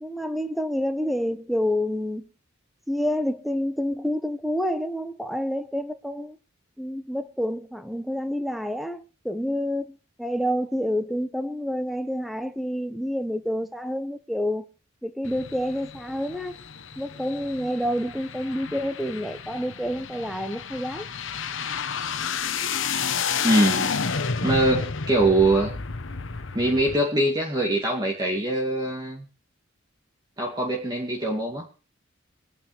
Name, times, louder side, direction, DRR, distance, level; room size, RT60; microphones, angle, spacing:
voice 1, 0.0-2.3 2.9-6.4 6.8-14.6 15.0-16.6 17.0-21.1, equal, ahead, 1.0 m, -28 dB
sound 1, 15.2-27.0, left 6 dB, 65° left, 1.1 m, -31 dB
voice 2, 23.4-23.9 24.4-25.7 26.5-29.2 30.4-31.7, right 1 dB, 20° right, 2.3 m, -23 dB
23.5 x 9.2 x 3.3 m
head